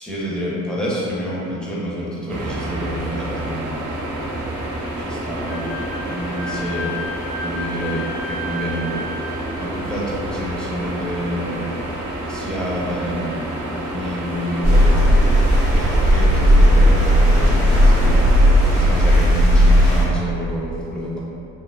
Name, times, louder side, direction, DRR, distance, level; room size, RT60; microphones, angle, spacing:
voice 1, 0.0-4.0 5.0-7.1 7.4-12.0 12.3-15.4 15.7-18.3 18.7-21.2, equal, 5° left, -7 dB, 0.5 m, -28 dB
sound 1, 2.3-19.2, right 1 dB, 80° right, 0.5 m, -29 dB
Wind instrument woodwind instrument, 5.5-9.4, left 1 dB, 55° left, 0.7 m, -33 dB
sound 2, 14.6-20.0, equal, 85° left, 1.3 m, -14 dB
2.7 x 2.3 x 2.2 m, 2.7 s
cardioid pair, 90°, 30 cm